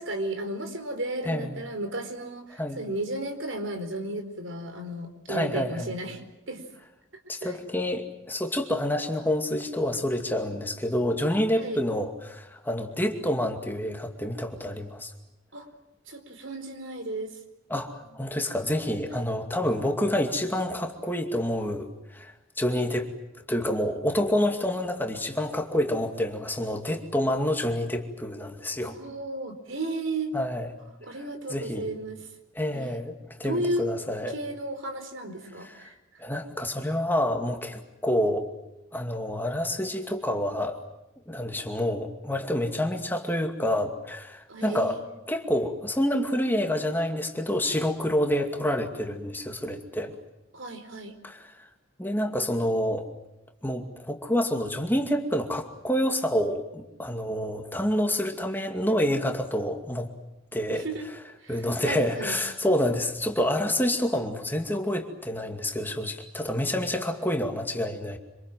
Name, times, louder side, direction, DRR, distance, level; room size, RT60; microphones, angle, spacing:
voice 1, 0.0-6.6 7.4-7.5 11.5-11.8 15.5-15.7 16.1-17.3 19.1-19.2 28.8-30.4 31.0-32.2 32.7-33.0 33.4-33.9 34.3-36.2 44.5-45.0 50.5-51.1 60.7-61.1 61.4-62.4, right 1 dB, 75° right, 7 dB, 4.5 m, -34 dB
voice 2, 5.3-5.9 7.3-15.1 17.7-23.1 23.5-28.9 30.3-30.7 31.1-31.2 31.5-31.9 32.5-34.3 35.8-35.9 36.2-38.5 38.9-40.8 41.3-45.0 45.3-50.2 51.2-51.5 52.0-53.1 53.6-60.1 60.5-60.8 61.5-68.2, left 1 dB, 10° left, 4 dB, 2.4 m, -28 dB
27.0 x 26.5 x 7.5 m, 0.92 s
head